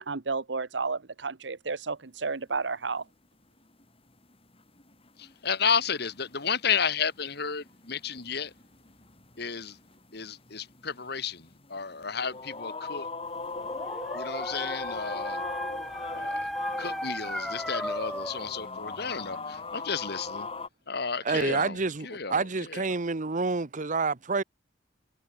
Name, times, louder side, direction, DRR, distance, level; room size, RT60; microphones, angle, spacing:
voice 1, 0.0-3.0, right 4 dB, 75° right, 1.1 m, -32 dB
sound 1, 3.6-3.8 4.2-4.3 4.5-20.7, left 3 dB, 30° left, 5.5 m, -39 dB
voice 2, 5.2-8.5 9.4-9.8 10.1-13.1 14.1-15.4 16.1-16.5 16.8-20.5 20.9-21.8 22.0-22.9, left 6 dB, 60° left, 2.3 m, -32 dB
Dog, 13.4-18.5, equal, ahead, 0.6 m, -35 dB
voice 3, 21.2-24.4, right 4 dB, 45° right, 0.9 m, -28 dB
head